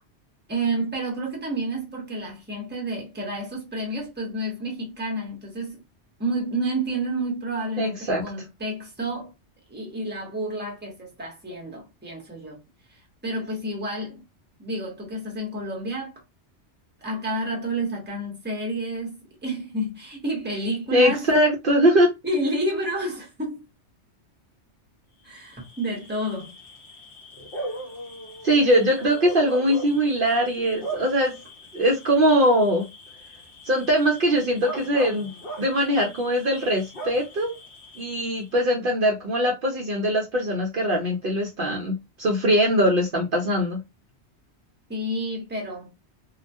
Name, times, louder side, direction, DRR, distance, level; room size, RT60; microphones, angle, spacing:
voice 1, 0.5-5.8 6.2-9.3 9.7-12.6 13.2-14.2 14.6-16.2 17.0-21.3 22.2-23.6 25.2-26.5 28.6-28.7 44.9-45.9, right 1 dB, 10° right, 0.7 m, -30 dB
voice 2, 7.8-8.2 20.9-22.1 28.4-31.3 31.7-32.9 33.7-35.3 35.6-37.5 38.0-43.8, equal, 60° right, 0.7 m, -21 dB
Bark / Cricket, 25.3-38.6, right 2 dB, 55° left, 1.0 m, -39 dB
2.3 x 2.1 x 2.6 m
omnidirectional pair, 1.2 m